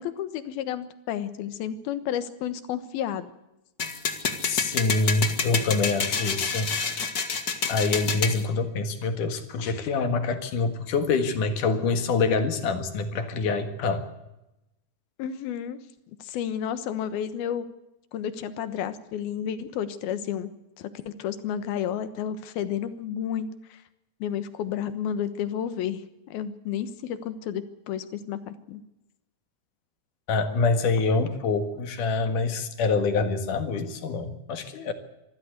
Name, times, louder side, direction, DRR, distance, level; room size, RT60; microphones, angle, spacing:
voice 1, 0.0-3.3 15.2-15.8 16.2-17.7 18.1-20.5 20.8-23.8 24.2-26.0 26.3-28.8, left 9 dB, 90° left, 12 dB, 3.2 m, -31 dB
sound 1, 3.8-8.4, left 5 dB, 40° left, 1.4 m, -28 dB
voice 2, 4.4-6.8 7.7-14.1 30.3-34.9, left 4 dB, 65° left, 8 dB, 3.1 m, -26 dB
25.0 x 14.5 x 8.0 m, 0.93 s
omnidirectional pair, 4.2 m